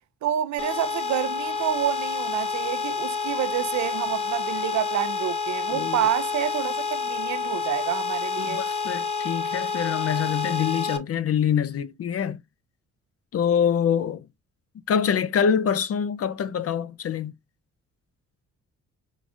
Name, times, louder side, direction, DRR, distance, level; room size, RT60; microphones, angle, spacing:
voice 1, 0.2-8.6, right 11 dB, 70° right, 0.6 m, -28 dB
sound 1, 0.6-11.0, left 4 dB, 20° left, 1.0 m, -29 dB
voice 2, 8.4-12.4 13.3-14.3 14.9-17.3, left 8 dB, 50° left, 0.7 m, -25 dB
4.8 x 3.8 x 2.6 m
cardioid pair, 90°, 30 cm